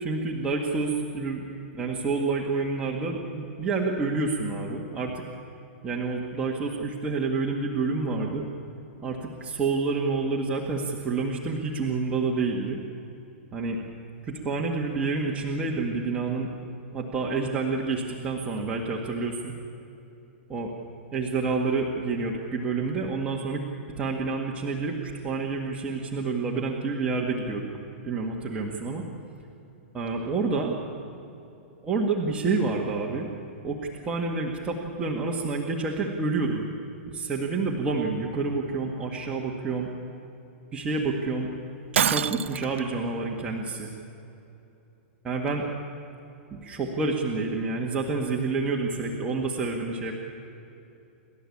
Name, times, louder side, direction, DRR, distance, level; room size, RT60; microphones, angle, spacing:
voice 1, 0.0-1.4 1.7-5.2 5.8-8.5 9.0-12.8 13.5-13.8 14.2-16.5 16.9-19.5 20.5-20.7 21.1-23.6 24.0-27.7 28.0-29.1 29.9-30.8 31.8-33.3 33.6-36.6 37.1-39.9 40.7-41.5 41.9-43.9 45.2-45.6 46.5-50.1, right 4 dB, 15° right, -2 dB, 1.9 m, -28 dB
Shatter, 41.9-42.8, right 9 dB, 85° right, 0.7 m, -25 dB
29.0 x 12.5 x 8.6 m, 2.8 s
hypercardioid pair, 145°, 7 cm